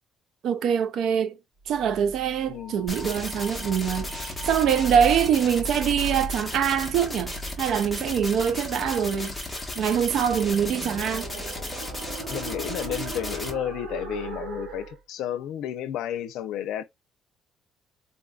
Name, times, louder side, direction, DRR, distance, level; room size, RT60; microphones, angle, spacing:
voice 1, 0.4-1.3 1.7-7.3 7.6-9.3 9.8-11.3, right 8 dB, 60° right, 0.4 m, -24 dB
sound 1, 1.7-15.0, right 3 dB, 80° right, 2.0 m, -38 dB
sound 2, 2.5-7.6, left 2 dB, 25° left, 1.1 m, -47 dB
sound 3, 2.9-13.5, left 2 dB, 5° left, 1.0 m, -35 dB
voice 2, 12.3-16.8, left 11 dB, 80° left, 0.5 m, -32 dB
3.8 x 2.6 x 2.3 m
cardioid pair, 155°, 0 cm